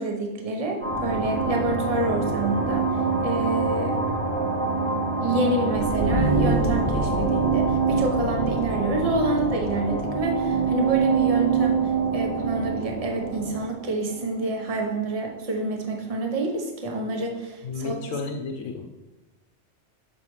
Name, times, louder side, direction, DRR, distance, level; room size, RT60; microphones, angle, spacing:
voice 1, 0.0-3.0 3.2-4.0 5.2-18.0, right 2 dB, 35° right, 2 dB, 0.8 m, -27 dB
sound 1, 0.8-14.9, right 4 dB, 90° right, 3.0 m, -25 dB
voice 2, 17.6-19.0, left 4 dB, 90° left, 4 dB, 1.0 m, -32 dB
6.4 x 5.5 x 3.2 m, 1.1 s
omnidirectional pair, 1.3 m